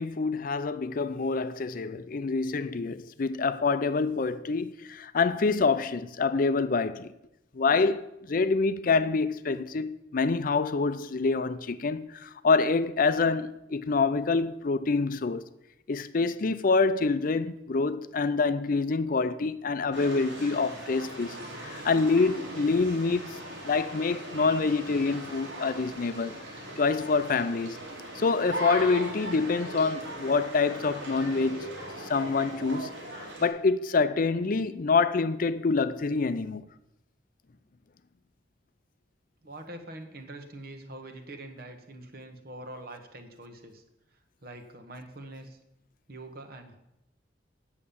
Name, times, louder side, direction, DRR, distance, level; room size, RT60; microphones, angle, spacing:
voice 1, 0.0-7.1 7.6-8.0 8.3-15.4 15.9-23.4 23.6-26.4 26.8-27.8 28.1-31.7 32.1-32.9 33.4-36.6, left 4 dB, 50° left, 0.5 m, -26 dB
sound 1, 19.9-33.5, right 1 dB, 90° right, 3.7 m, -39 dB
voice 2, 39.4-43.8 44.4-45.6 46.1-46.8, right 1 dB, 55° right, 1.4 m, -44 dB
8.6 x 7.3 x 7.0 m
head